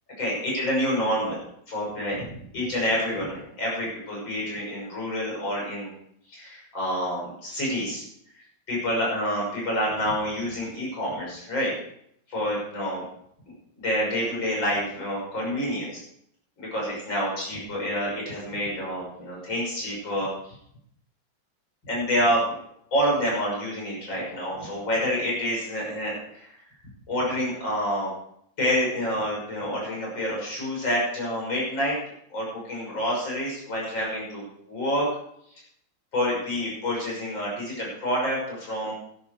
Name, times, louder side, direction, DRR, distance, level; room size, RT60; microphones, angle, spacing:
voice 1, 0.2-1.4 1.7-5.9 6.3-8.1 8.7-11.7 12.3-13.1 13.8-16.0 16.6-20.5 21.8-22.4 22.9-26.5 27.1-28.1 28.6-32.0 32.3-35.1 36.1-38.9, equal, 80° left, -3 dB, 6.9 m, -28 dB
12.5 x 11.5 x 4.8 m, 0.72 s
omnidirectional pair, 2.0 m